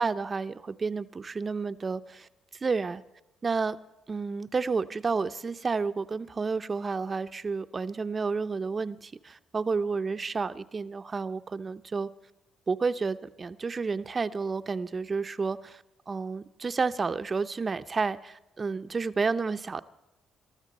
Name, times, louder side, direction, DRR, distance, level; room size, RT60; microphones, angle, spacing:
voice 1, 0.0-2.3 2.6-3.0 3.4-3.8 4.1-12.1 12.7-19.8, right 4 dB, 35° right, 12 dB, 0.7 m, -30 dB
22.5 x 13.5 x 4.2 m, 0.95 s
cardioid pair, 90°, 0 cm